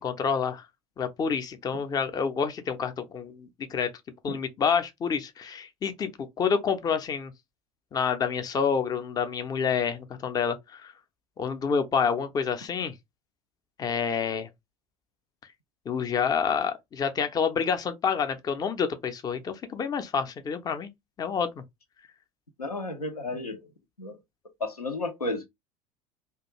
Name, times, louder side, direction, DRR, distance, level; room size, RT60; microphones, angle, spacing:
voice 1, 0.0-0.7 1.0-3.9 4.2-7.3 7.9-10.9 11.4-12.9 13.8-14.5 15.9-20.9 21.2-21.6, left 6 dB, 20° left, 0.5 m, -28 dB
voice 2, 22.6-23.7 24.0-24.2 24.6-25.5, left 2 dB, 90° left, 0.5 m, -32 dB
2.4 x 2.2 x 2.9 m
figure-of-eight pair, 70°, 19 cm